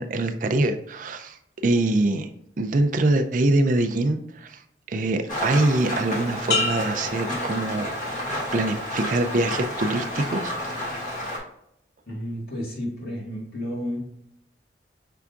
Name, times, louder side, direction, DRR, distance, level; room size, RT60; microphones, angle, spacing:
voice 1, 0.0-2.3 2.6-4.6 4.9-8.3 8.5-10.5, right 2 dB, 45° right, 7 dB, 0.4 m, -24 dB
Rain, 5.3-11.4, left 1 dB, 45° left, 1.4 m, -30 dB
sound 1, 6.5-8.3 8.8-9.2, left 3 dB, 85° left, 0.9 m, -30 dB
voice 2, 12.1-14.0, equal, 65° left, -4 dB, 1.8 m, -31 dB
5.7 x 3.4 x 2.5 m, 0.75 s
head